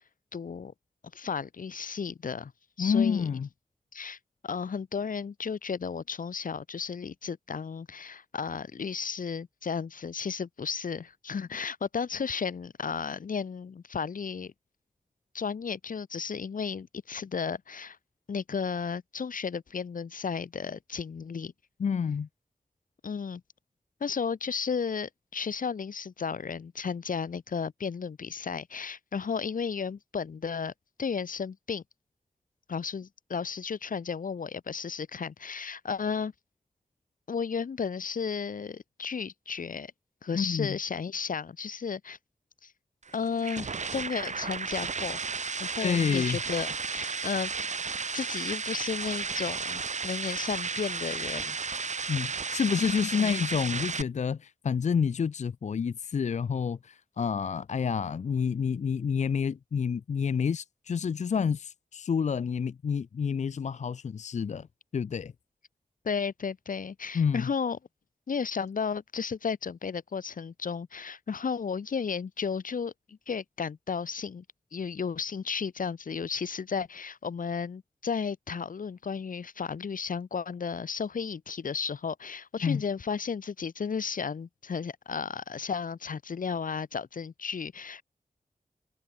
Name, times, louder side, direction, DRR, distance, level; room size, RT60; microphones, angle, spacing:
voice 1, 0.3-0.7 1.1-2.5 2.8-3.3 3.9-4.2 4.4-14.5 15.3-18.0 18.3-21.5 23.0-23.4 24.0-30.7 31.0-31.8 32.7-36.3 37.3-39.9 40.2-42.2 42.6-42.7 43.1-45.2 45.6-47.5 48.1-52.0 53.1-53.3 66.0-67.8 68.3-74.4 74.7-88.0, left 6 dB, 85° left, 1.4 m, -34 dB
voice 2, 2.8-3.5 21.8-22.3 40.3-40.8 45.8-46.4 52.1-64.7 64.9-65.3 67.1-67.5 82.6-82.8, left 6 dB, 60° left, 0.4 m, -29 dB
sound 1, 43.0-54.0, right 5 dB, 60° right, 1.2 m, -33 dB
wide cardioid pair, 90°, 14 cm